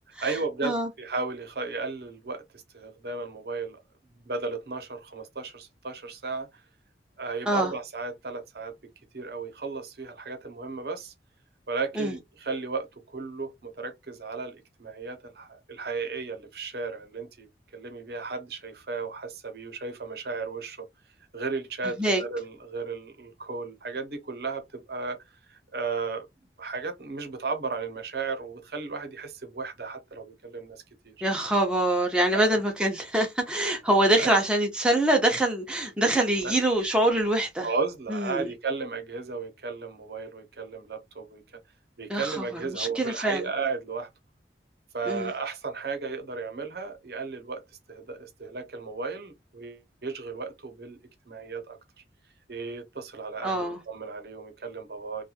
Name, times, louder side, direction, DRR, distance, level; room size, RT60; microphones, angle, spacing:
voice 1, 0.2-3.8 4.2-6.6 7.2-8.7 9.1-11.1 11.7-17.5 17.7-20.9 21.3-25.2 25.5-26.3 26.6-31.1 32.3-32.6 34.2-34.4 36.4-36.5 37.6-41.6 42.0-44.1 44.9-47.6 47.9-51.0 51.3-51.8 52.5-55.2, right 4 dB, 60° right, 0.7 m, -34 dB
voice 2, 31.2-37.7 38.1-38.5 42.1-43.4 45.1-45.3 53.4-53.8, right 1 dB, 5° right, 0.5 m, -24 dB
2.9 x 2.2 x 2.4 m
head